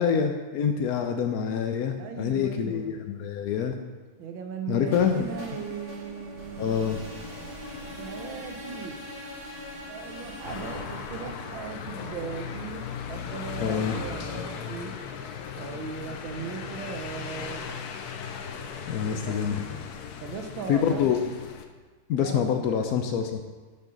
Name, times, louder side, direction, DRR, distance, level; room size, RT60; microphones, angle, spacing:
voice 1, 0.0-3.8 4.7-5.3 6.6-7.0 13.6-14.0 18.9-19.6 20.7-21.2 22.1-23.4, left 7 dB, 85° left, 5 dB, 0.8 m, -26 dB
voice 2, 2.0-3.0 4.2-6.7 8.0-9.0 9.8-14.9 15.6-17.7 19.2-19.4 20.2-21.1 22.2-23.0, right 6 dB, 75° right, 5 dB, 1.6 m, -38 dB
sound 1, 4.8-12.7, left 1 dB, 55° right, 3.7 m, -41 dB
sound 2, 10.4-21.7, left 7 dB, 65° left, 1.0 m, -37 dB
11.5 x 5.7 x 3.9 m, 1.4 s
omnidirectional pair, 2.2 m